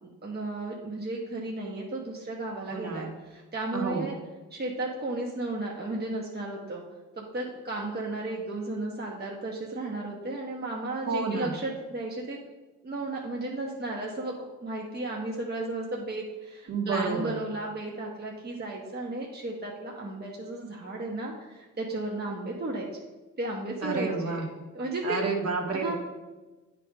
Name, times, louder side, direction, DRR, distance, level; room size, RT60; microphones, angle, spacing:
voice 1, 0.0-4.2 4.5-6.8 7.2-12.4 12.8-14.3 14.6-22.9 23.4-24.4 24.7-25.2 25.7-25.9, right 2 dB, 35° right, -2 dB, 1.1 m, -34 dB
voice 2, 2.6-3.1 3.7-4.1 11.1-11.6 16.7-17.4 23.8-24.5 25.0-25.9, right 4 dB, 55° right, -1 dB, 1.6 m, -30 dB
9.1 x 3.4 x 5.1 m, 1.2 s
cardioid pair, 80°, 30 cm